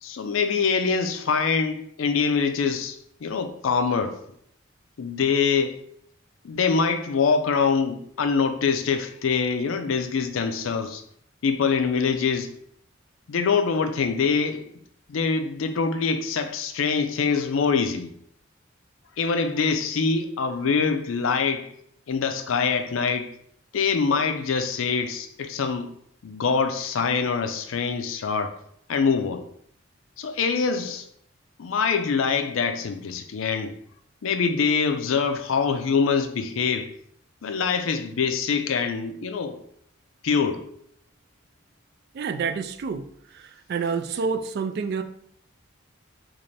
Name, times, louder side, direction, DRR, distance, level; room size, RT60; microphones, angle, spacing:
voice 1, 0.0-4.2 5.0-5.8 6.4-11.0 11.4-12.5 13.3-14.7 15.1-18.1 19.2-21.7 22.1-23.3 23.7-25.9 26.2-28.6 28.9-29.4 30.2-31.1 31.6-33.7 34.2-36.9 37.4-39.6 40.2-40.6, left 5 dB, 80° left, 8 dB, 0.4 m, -24 dB
voice 2, 42.1-43.0 43.3-45.0, right 5 dB, 55° right, 7 dB, 0.3 m, -28 dB
3.2 x 2.5 x 4.0 m, 0.68 s
head